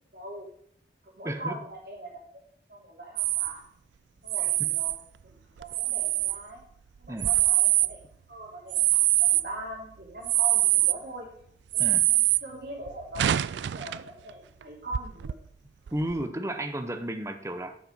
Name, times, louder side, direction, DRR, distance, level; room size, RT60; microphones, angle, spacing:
voice 1, 0.1-0.5 1.0-2.4 2.7-3.6 4.2-4.9 5.2-6.6 7.0-8.0 8.3-11.3 11.7-15.3, right 1 dB, 60° right, -2 dB, 3.1 m, -42 dB
voice 2, 1.2-1.6 7.1-7.3 11.8-12.1 15.9-17.8, right 1 dB, 15° right, 8 dB, 0.7 m, -33 dB
sound 1, 3.2-3.5 4.3-5.0 5.6-6.4 7.0-7.9 8.7-9.4 10.2-11.0 11.7-12.4 12.9-14.1 14.6-14.7 14.9-15.3 15.9-16.2, right 16 dB, 80° right, 0.3 m, -24 dB
11.5 x 5.7 x 5.3 m, 0.63 s
head